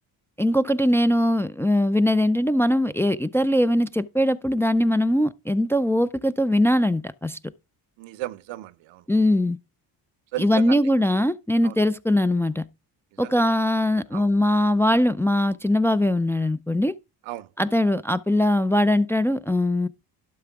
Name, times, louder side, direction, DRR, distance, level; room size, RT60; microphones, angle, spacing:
voice 1, 0.4-7.4 9.1-9.6 10.4-12.7 13.2-16.9 17.6-19.9, left 1 dB, 5° left, 0.4 m, -21 dB
voice 2, 8.0-9.0 10.3-10.8 11.6-11.8 13.2-13.4 14.1-14.3 17.3-17.5, right 16 dB, 80° right, 0.8 m, -34 dB
12.0 x 5.8 x 3.5 m
cardioid pair, 85°, 45 cm